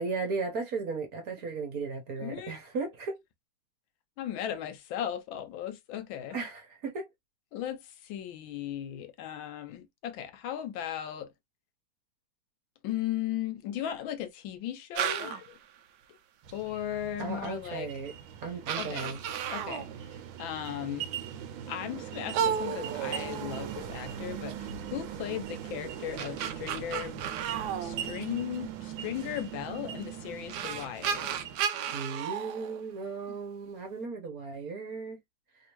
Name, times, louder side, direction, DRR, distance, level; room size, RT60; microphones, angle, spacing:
voice 1, 0.0-3.2 6.3-7.1 17.2-18.1 18.4-19.2 31.9-35.2, right 4 dB, 55° right, 1.2 m, -36 dB
voice 2, 2.2-2.6 4.2-6.4 7.5-11.3 12.8-15.5 16.5-17.9 18.8-19.1 19.5-19.9 20.4-21.1 21.7-27.2 27.8-31.3, left 11 dB, 70° left, 1.3 m, -37 dB
sound 1, 15.0-15.5 17.6-17.7 18.3-18.4 18.7-20.0 22.3-24.0 25.9-28.6 30.0-30.1 30.5-33.4, right 8 dB, 90° right, 0.9 m, -33 dB
sound 2, 16.4-31.6, right 9 dB, 70° right, 1.3 m, -41 dB
3.5 x 2.7 x 2.9 m
omnidirectional pair, 2.4 m